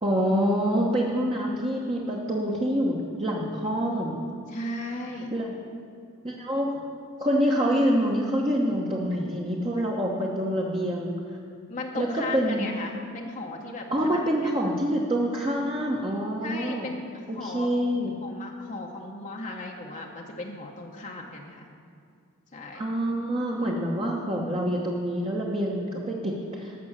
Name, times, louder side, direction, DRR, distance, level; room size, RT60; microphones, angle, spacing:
voice 1, 0.0-4.2 5.3-5.5 6.2-6.8 7.2-11.4 11.9-12.7 13.9-16.9 17.3-18.1 22.7-26.8, equal, 25° right, -2 dB, 1.0 m, -26 dB
voice 2, 4.5-5.3 11.7-14.5 16.4-17.7 18.2-21.7 22.5-22.9, left 2 dB, 35° left, 0 dB, 0.8 m, -37 dB
13.5 x 6.0 x 7.3 m, 2.3 s
head